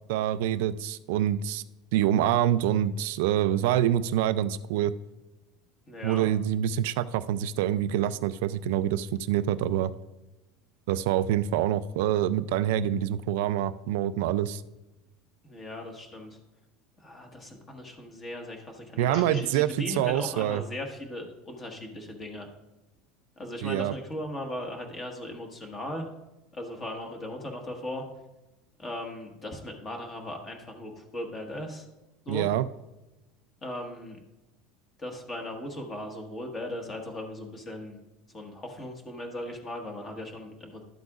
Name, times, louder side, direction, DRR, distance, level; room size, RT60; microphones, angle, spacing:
voice 1, 0.1-1.6 1.9-4.9 6.0-9.9 10.9-14.6 19.0-20.6 23.6-23.9 32.3-32.7, right 11 dB, 75° right, 14 dB, 0.4 m, -26 dB
voice 2, 5.9-6.3 15.4-16.4 17.0-22.5 23.4-26.1 26.6-28.0 28.8-31.8 32.2-32.4 33.6-34.2 35.0-38.0 38.3-40.8, left 1 dB, 20° left, 2 dB, 1.4 m, -38 dB
sound 1, 19.1-19.7, left 2 dB, 60° left, 2.1 m, -46 dB
12.0 x 7.8 x 2.4 m, 0.99 s
cardioid pair, 155°, 0 cm